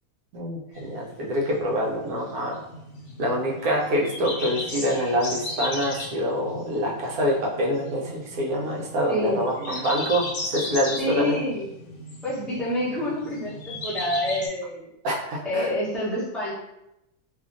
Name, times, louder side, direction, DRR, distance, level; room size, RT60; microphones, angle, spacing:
voice 1, 0.3-2.6 3.2-10.2 10.5-11.4 15.0-15.7, equal, 75° right, -2 dB, 1.1 m, -26 dB
sound 1, 0.7-14.5, left 2 dB, 65° left, 0.7 m, -36 dB
voice 2, 9.1-9.4 11.0-11.7 12.2-14.9 15.4-16.5, left 1 dB, ahead, -9 dB, 0.3 m, -28 dB
2.7 x 2.5 x 2.4 m, 0.87 s
omnidirectional pair, 1.6 m